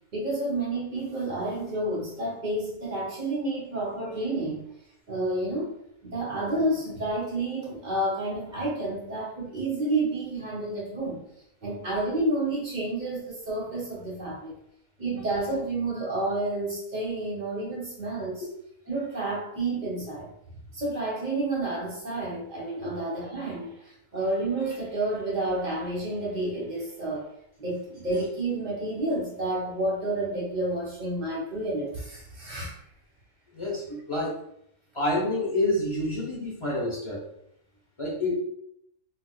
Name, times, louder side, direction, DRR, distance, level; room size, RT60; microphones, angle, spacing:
voice 1, 0.1-4.7 5.1-5.7 6.0-11.2 11.6-14.5 15.0-18.3 18.9-20.3 20.7-23.7 24.1-27.2 27.6-32.7, right 2 dB, 35° right, -4 dB, 0.9 m, -30 dB
voice 2, 33.5-34.4 34.9-37.2 38.0-38.3, left 1 dB, 35° left, -5 dB, 0.5 m, -28 dB
4.0 x 2.4 x 2.3 m, 0.75 s
omnidirectional pair, 1.5 m